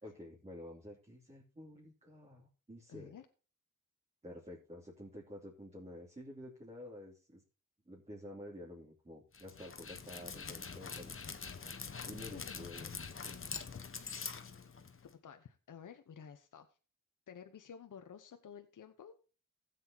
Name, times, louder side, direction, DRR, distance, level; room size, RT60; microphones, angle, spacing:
voice 1, 0.0-3.2 4.2-7.4 7.9-11.2 12.0-12.9 13.3-13.4, left 1 dB, 20° right, -4 dB, 3.1 m, -50 dB
voice 2, 2.9-3.3 12.2-12.5 15.1-16.7 17.3-19.2, left 7 dB, 75° left, 7 dB, 1.0 m, -52 dB
Dog, 9.3-15.1, left 5 dB, 40° left, 1.2 m, -45 dB
16.0 x 7.9 x 2.9 m, 0.35 s
cardioid pair, 80°, 31 cm